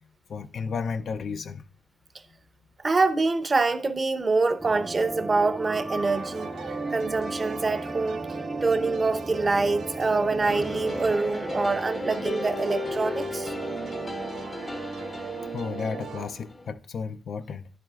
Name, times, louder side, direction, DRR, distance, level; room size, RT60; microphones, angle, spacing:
voice 1, 0.3-1.6 15.5-17.7, left 5 dB, 70° left, 0.5 m, -33 dB
voice 2, 2.8-6.5 6.9-8.3 8.6-13.5, right 3 dB, 40° right, 0.8 m, -25 dB
sound 1, 4.6-12.1 12.4-12.5 13.6-14.1, right 1 dB, 15° right, 0.4 m, -36 dB
sound 2, 6.0-16.3, right 6 dB, 80° right, 0.4 m, -39 dB
sound 3, 10.5-16.7, left 2 dB, 30° left, 0.7 m, -35 dB
10.0 x 7.6 x 2.4 m
cardioid pair, 65°, 0 cm